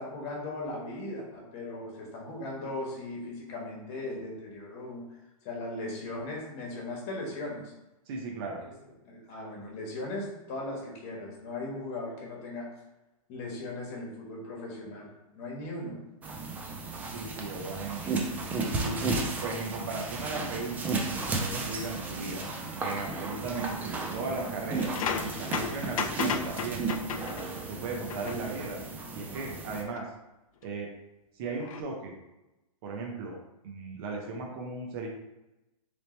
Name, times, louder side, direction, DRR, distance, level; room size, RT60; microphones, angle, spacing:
voice 1, 0.0-5.0 5.4-7.7 9.0-12.7 13.3-16.0, left 2 dB, 30° left, -2 dB, 1.4 m, -38 dB
voice 2, 8.1-8.6 17.1-18.2 18.6-22.4 22.8-27.0 27.7-28.8 29.1-30.0 30.6-30.9 31.3-32.1 32.8-33.4 33.6-35.1, right 3 dB, 40° right, -1 dB, 0.8 m, -37 dB
sound 1, 16.2-29.8, right 3 dB, 10° right, 0.4 m, -34 dB
metal bender creaks clacks bending creaks harder, 24.7-27.7 28.1-28.4 30.0-30.1 31.6-31.8, left 6 dB, 65° left, 0.5 m, -34 dB
3.9 x 3.4 x 3.2 m, 0.97 s
hypercardioid pair, 150°, 19 cm